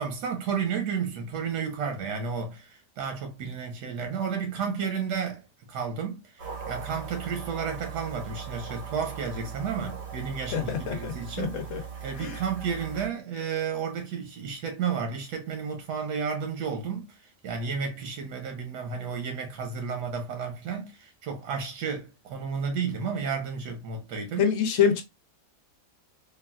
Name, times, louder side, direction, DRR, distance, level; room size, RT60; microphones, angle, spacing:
voice 1, 0.0-11.6 12.0-17.1 17.4-24.5, right 6 dB, 85° right, 1.3 m, -32 dB
sound 1, 6.4-13.1, right 6 dB, 55° right, 0.8 m, -39 dB
voice 2, 10.5-11.8 12.2-12.4 24.4-25.0, left 7 dB, 65° left, 0.8 m, -26 dB
3.4 x 2.3 x 2.2 m
omnidirectional pair, 1.7 m